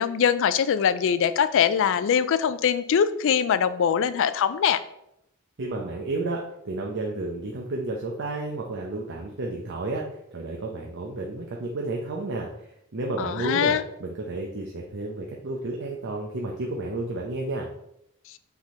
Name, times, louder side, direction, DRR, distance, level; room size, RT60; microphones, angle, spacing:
voice 1, 0.0-4.8 13.2-13.8, left 7 dB, 60° left, 13 dB, 0.4 m, -22 dB
voice 2, 5.6-17.7, right 2 dB, 60° right, -1 dB, 0.7 m, -32 dB
6.1 x 3.7 x 4.3 m, 0.78 s
head